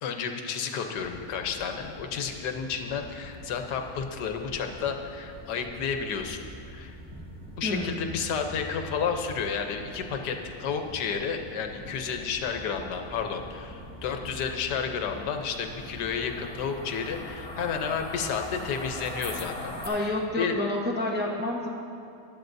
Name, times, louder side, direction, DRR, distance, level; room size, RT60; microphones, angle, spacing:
voice 1, 0.0-6.4 6.7-7.0 7.6-20.6, left 6 dB, 90° left, 5 dB, 1.4 m, -31 dB
sound 1, 1.0-19.9, left 1 dB, 5° left, 1.5 m, -43 dB
voice 2, 7.6-8.0 19.8-21.7, left 1 dB, 10° right, -2 dB, 0.6 m, -29 dB
15.5 x 11.0 x 2.6 m, 2.5 s
omnidirectional pair, 1.7 m